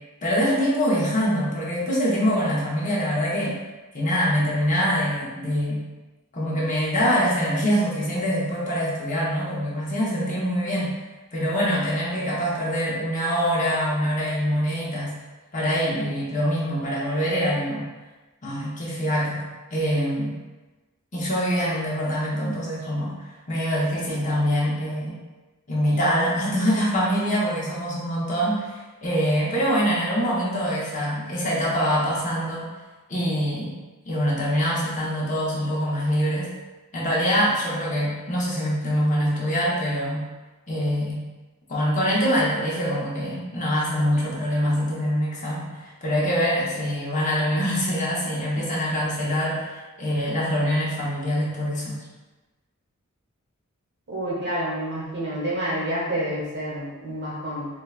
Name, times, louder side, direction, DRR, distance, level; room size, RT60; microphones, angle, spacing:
voice 1, 0.2-3.6 3.9-5.8 6.3-10.9 11.3-15.1 15.5-17.8 18.4-19.4 19.7-20.4 21.1-23.1 23.5-25.2 25.7-32.6 33.1-33.8 34.1-36.5 36.9-40.3 40.7-41.2 41.7-49.6 50.0-52.0, equal, 35° left, -6 dB, 0.8 m, -24 dB
voice 2, 54.1-57.7, right 1 dB, 55° right, -6 dB, 1.0 m, -28 dB
4.5 x 2.2 x 2.4 m, 1.2 s
head